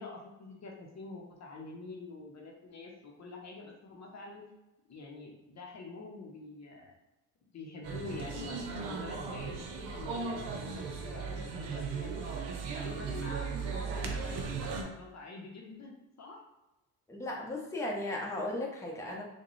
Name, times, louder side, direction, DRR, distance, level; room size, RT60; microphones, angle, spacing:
voice 1, 0.0-4.4 4.9-7.0 7.5-12.3 12.7-16.4, left 3 dB, 40° left, 0 dB, 0.7 m, -46 dB
sound 1, 7.8-14.8, right 5 dB, 75° right, 0.7 m, -37 dB
voice 2, 17.1-19.2, left 1 dB, 5° left, -2 dB, 0.8 m, -36 dB
3.6 x 2.2 x 3.1 m, 1.0 s
supercardioid pair, 75°, 41 cm